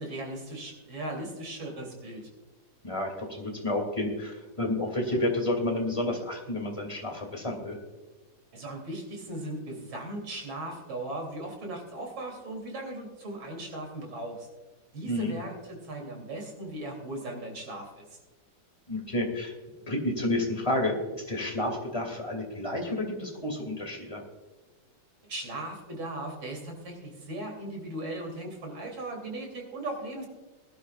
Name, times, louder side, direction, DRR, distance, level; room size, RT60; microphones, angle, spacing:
voice 1, 0.0-2.3 8.5-14.5 14.9-18.2 25.3-30.3, right 1 dB, 90° right, 1 dB, 4.0 m, -38 dB
voice 2, 2.8-7.8 15.1-15.4 18.9-19.5 19.9-24.2, left 1 dB, 15° left, 2 dB, 2.6 m, -30 dB
20.0 x 12.0 x 2.5 m, 1.2 s
omnidirectional pair, 2.2 m